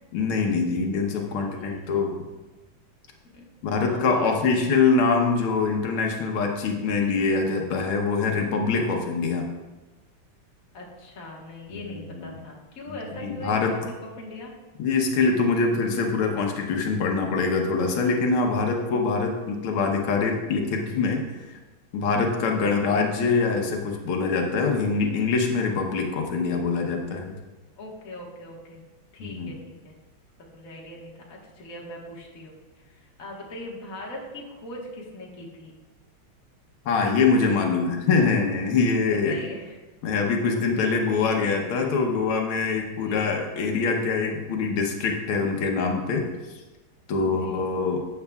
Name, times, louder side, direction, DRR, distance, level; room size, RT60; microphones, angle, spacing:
voice 1, 0.1-2.1 3.6-9.5 11.7-11.8 12.2-12.3 13.2-13.8 14.8-21.5 21.9-27.4 29.2-29.5 36.9-39.4 40.0-46.3 47.1-48.0, left 4 dB, 90° left, 2 dB, 1.8 m, -24 dB
voice 2, 1.1-2.0 3.3-4.8 10.7-14.5 22.6-23.1 27.8-28.8 29.1-30.0 30.5-35.8 39.3-40.1 40.8-40.9 41.4-41.9 42.7-43.4 47.2-47.7, left 1 dB, 45° left, -2 dB, 1.8 m, -41 dB
12.0 x 7.8 x 2.4 m, 1.2 s
omnidirectional pair, 2.3 m